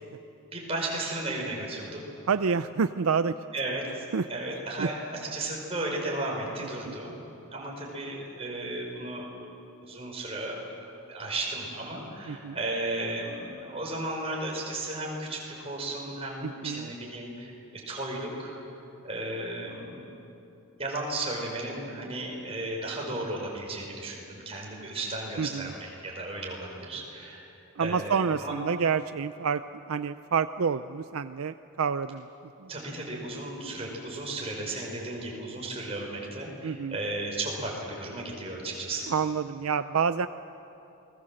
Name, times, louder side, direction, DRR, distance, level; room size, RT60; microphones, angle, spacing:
voice 1, 0.5-2.0 3.5-7.1 7.5-9.3 9.8-17.5 17.9-18.6 19.0-20.2 20.8-27.4 27.8-28.5 32.7-39.1, right 2 dB, 25° right, -2 dB, 5.6 m, -34 dB
voice 2, 2.3-3.3 4.1-4.3 4.8-4.9 6.9-7.0 12.3-12.6 16.4-16.9 25.4-25.7 27.8-32.3 32.6-32.7 36.6-37.0 39.1-40.3, right 6 dB, 70° right, 11 dB, 0.5 m, -28 dB
29.0 x 21.0 x 7.7 m, 2.8 s
head